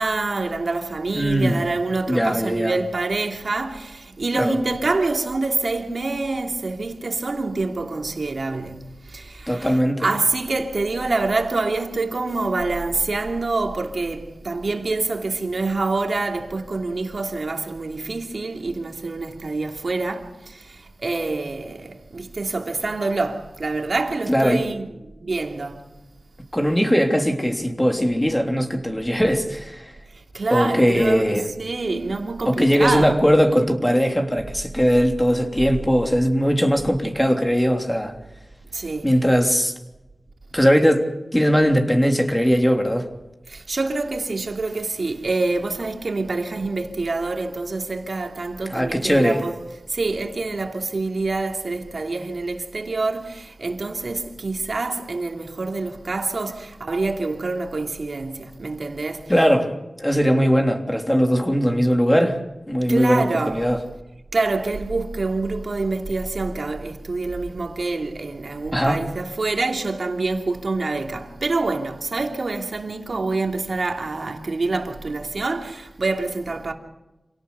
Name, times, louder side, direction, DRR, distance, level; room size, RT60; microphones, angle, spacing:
voice 1, 0.0-25.9 30.1-33.1 38.7-39.1 43.5-49.6 49.9-59.3 62.9-63.7 64.3-76.7, right 3 dB, 60° right, 3.0 m, -26 dB
voice 2, 1.1-1.6 2.1-2.8 4.3-4.5 9.5-10.1 24.3-24.6 26.5-29.9 30.5-31.5 32.4-38.1 39.0-39.7 40.5-43.1 48.7-49.4 59.3-62.4 62.7-63.8 68.7-69.0, equal, 10° left, 3.3 m, -20 dB
27.5 x 18.0 x 7.0 m
wide cardioid pair, 65°, 0 cm